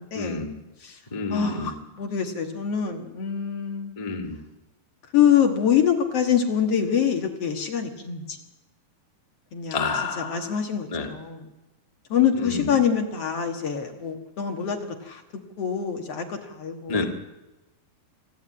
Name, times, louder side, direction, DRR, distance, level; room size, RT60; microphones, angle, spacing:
voice 1, 0.1-0.5 1.1-1.7 4.0-4.4 9.7-10.5 10.9-11.1 12.4-12.8 16.9-17.0, left 4 dB, 20° left, 2 dB, 1.1 m, -29 dB
voice 2, 1.3-1.7 2.0-3.9 5.1-8.4 9.5-9.8 10.2-11.4 12.1-15.2 15.6-17.0, left 8 dB, 50° left, 4 dB, 2.3 m, -25 dB
26.5 x 12.5 x 8.7 m, 1.0 s
omnidirectional pair, 4.0 m